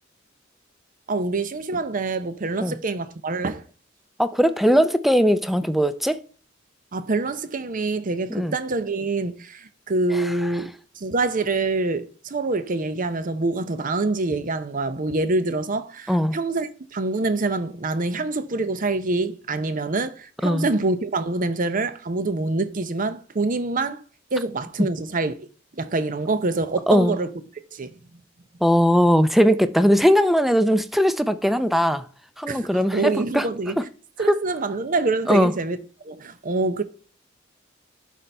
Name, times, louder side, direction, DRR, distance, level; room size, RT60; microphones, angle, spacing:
voice 1, 1.1-3.6 6.9-24.0 24.3-25.3 25.8-27.3 27.7-27.9 32.5-33.8 34.2-35.8 36.0-36.8, right 3 dB, 45° right, 0.6 m, -26 dB
voice 2, 4.2-6.2 8.3-8.5 16.1-16.4 20.4-20.7 26.9-27.2 28.6-32.0 32.4-33.4 34.3-34.4 35.3-35.5, equal, ahead, 0.5 m, -19 dB
11.5 x 4.3 x 3.4 m
head